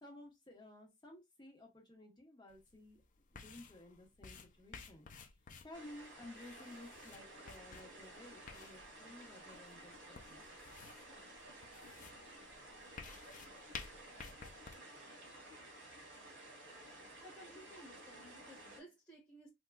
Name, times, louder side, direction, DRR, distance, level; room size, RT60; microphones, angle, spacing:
voice 1, 0.0-3.0 3.3-5.1 5.6-10.4, left 1 dB, 25° left, 1.1 m, -55 dB
sound 1, 2.5-14.7, left 5 dB, 45° left, 0.5 m, -55 dB
sound 2, 5.7-18.8, right 1 dB, 65° right, 1.7 m, -54 dB
voice 2, 17.2-19.5, right 1 dB, 5° left, 1.4 m, -57 dB
3.5 x 2.8 x 2.2 m
head